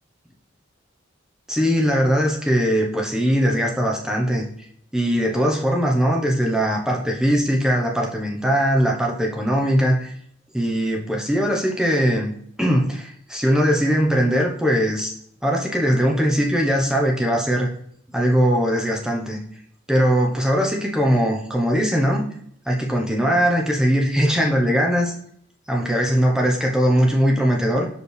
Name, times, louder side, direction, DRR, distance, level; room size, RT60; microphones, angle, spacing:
voice 1, 1.5-4.4 4.9-10.1 10.5-12.3 12.6-15.1 15.4-17.7 18.1-19.4 19.9-22.2 22.7-25.1 25.7-27.9, equal, 5° right, 0 dB, 1.0 m, -20 dB
6.3 x 5.0 x 3.4 m, 0.65 s
head